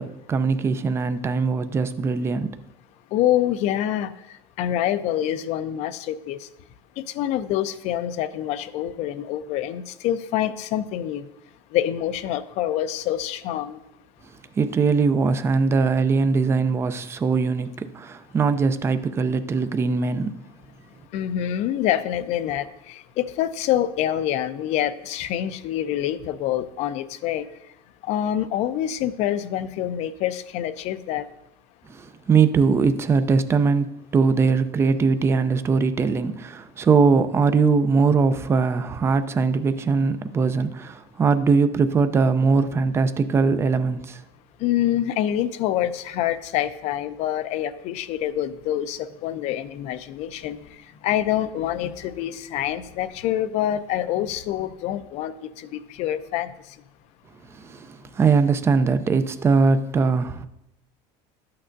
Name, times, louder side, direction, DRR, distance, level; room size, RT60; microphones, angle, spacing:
voice 1, 0.0-2.5 14.6-20.4 31.9-44.2 57.5-60.5, right 4 dB, 20° right, 0.4 m, -21 dB
voice 2, 3.1-4.1 4.6-6.5 7.0-11.3 11.7-13.8 21.1-27.5 28.0-31.2 44.6-50.6 51.0-56.5, left 11 dB, 55° left, 0.5 m, -26 dB
12.5 x 8.6 x 2.6 m
cardioid pair, 145°, 14 cm